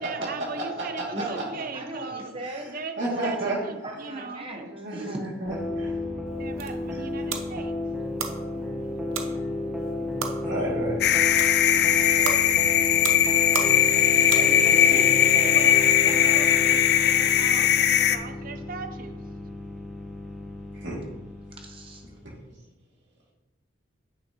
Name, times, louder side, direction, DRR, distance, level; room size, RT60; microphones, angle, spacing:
voice 1, 0.0-2.3 2.7-4.5 6.4-7.7 14.9-19.2, right 4 dB, 45° right, 7 dB, 0.6 m, -38 dB
voice 2, 0.6-1.1 3.0-3.6 4.7-5.9 6.6-7.0 10.4-11.0 20.8-21.0, right 2 dB, 65° right, -4 dB, 2.3 m, -31 dB
voice 3, 1.1-2.7 3.1-3.6 3.8-5.2 14.3-15.2 21.5-22.1, right 1 dB, 25° right, 1 dB, 1.1 m, -37 dB
sound 1, 5.4-22.2, left 2 dB, ahead, 0.9 m, -32 dB
sound 2, 6.3-14.9, right 6 dB, 90° right, 0.8 m, -37 dB
sound 3, 11.0-18.2, left 10 dB, 55° left, 0.4 m, -20 dB
8.7 x 6.3 x 2.9 m, 1.0 s
head